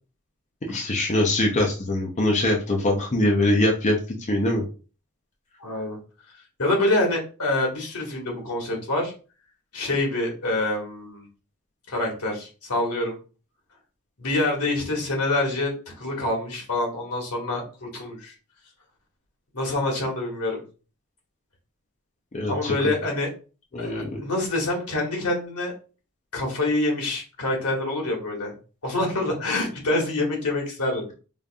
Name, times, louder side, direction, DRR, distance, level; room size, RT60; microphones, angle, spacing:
voice 1, 0.7-4.0 4.3-4.6 22.3-22.9 23.7-24.1, left 1 dB, 30° left, 0 dB, 0.6 m, -23 dB
voice 2, 5.6-6.0 6.6-9.1 9.7-11.3 11.9-13.2 14.2-18.3 19.5-20.6 22.5-23.3 23.8-25.7 26.3-28.5 28.8-31.1, left 2 dB, 75° left, 0 dB, 1.4 m, -26 dB
5.1 x 2.5 x 2.3 m, 0.35 s
head